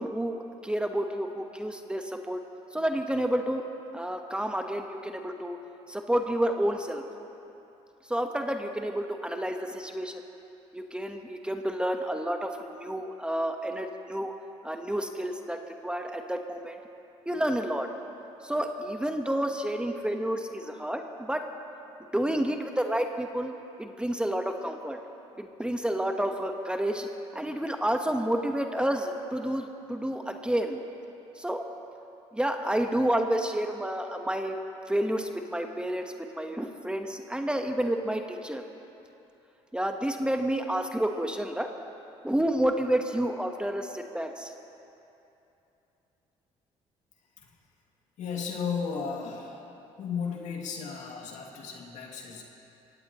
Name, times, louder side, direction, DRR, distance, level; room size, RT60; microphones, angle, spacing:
voice 1, 0.0-2.4 2.7-3.6 3.9-5.6 5.9-7.0 8.1-10.2 10.7-14.3 14.6-16.8 17.2-17.9 18.4-21.5 22.1-23.5 23.8-25.0 25.4-27.1 27.3-30.8 31.4-31.6 32.3-34.6 34.9-38.6 39.7-41.7 42.2-44.5, right 1 dB, 5° right, 4 dB, 1.2 m, -30 dB
voice 2, 48.2-49.6 50.0-52.4, left 6 dB, 70° left, -1 dB, 2.4 m, -34 dB
23.5 x 17.0 x 3.1 m, 2.9 s
supercardioid pair, 70°, 13 cm